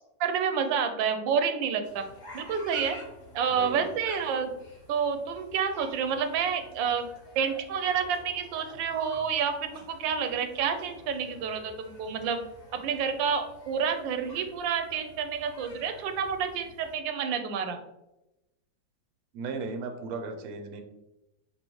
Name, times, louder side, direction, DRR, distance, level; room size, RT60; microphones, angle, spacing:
voice 1, 0.2-2.0 2.3-3.0 3.3-4.5 4.9-7.1 7.4-12.4 12.7-17.8, right 6 dB, 85° right, 7 dB, 1.3 m, -29 dB
sound 1, 1.8-16.9, left 2 dB, 35° left, 0.7 m, -50 dB
voice 2, 3.5-3.9 19.3-20.8, right 4 dB, 65° right, 6 dB, 1.0 m, -36 dB
5.5 x 2.9 x 3.0 m, 0.93 s
omnidirectional pair, 2.0 m